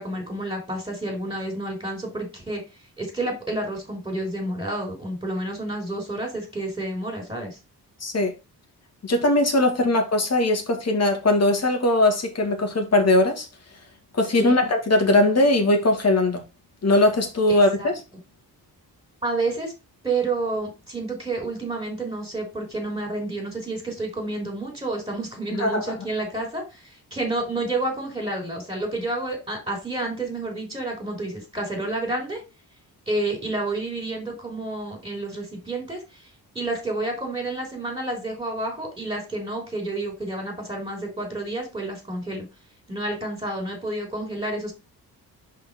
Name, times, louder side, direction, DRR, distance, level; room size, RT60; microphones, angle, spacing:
voice 1, 0.0-2.6 3.0-7.6 9.8-9.9 14.4-14.6 17.5-17.9 19.2-19.7 20.0-26.8 27.1-32.4 33.1-36.0 36.5-42.5 42.9-44.7, right 2 dB, 15° right, 3.4 m, -29 dB
voice 2, 8.0-8.3 9.0-13.5 14.1-16.4 16.8-17.9 25.5-25.9, left 2 dB, 40° left, 2.2 m, -20 dB
5.3 x 4.2 x 5.4 m
cardioid pair, 95°, 38 cm